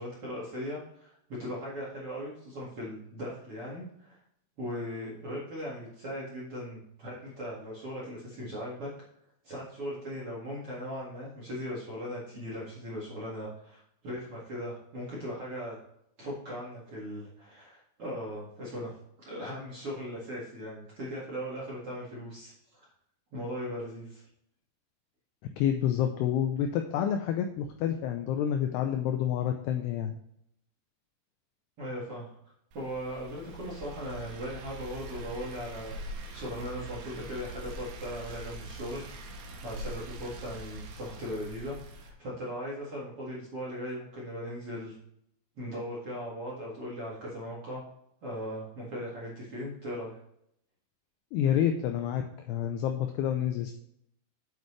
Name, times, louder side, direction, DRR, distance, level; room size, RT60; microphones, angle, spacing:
voice 1, 0.0-4.2 4.6-8.9 9.4-15.8 16.2-18.9 19.2-22.9 23.3-24.2 31.8-32.4 32.7-35.9 36.3-39.1 39.6-44.9 45.6-47.8 48.2-50.2, equal, 45° right, -6 dB, 1.9 m, -38 dB
voice 2, 25.6-30.1 51.3-53.7, left 9 dB, 90° left, 5 dB, 2.3 m, -28 dB
sound 1, 32.7-42.1, right 2 dB, 65° right, 2.6 m, -43 dB
8.7 x 8.2 x 3.3 m, 0.74 s
omnidirectional pair, 5.4 m